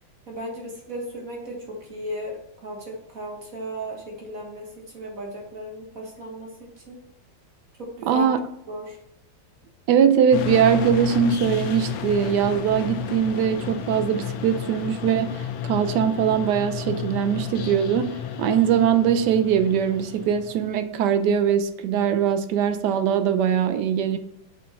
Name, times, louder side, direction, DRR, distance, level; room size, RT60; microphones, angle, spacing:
voice 1, 0.3-2.4 2.6-4.7 4.9-7.0 7.8-8.3 8.7-9.0, equal, 45° right, 0 dB, 1.8 m, -35 dB
voice 2, 8.1-8.4 9.9-24.2, right 8 dB, 70° right, 10 dB, 1.1 m, -21 dB
sound 1, 10.3-20.7, left 8 dB, 85° left, 1.5 m, -32 dB
6.5 x 5.5 x 4.2 m, 0.79 s
omnidirectional pair, 2.1 m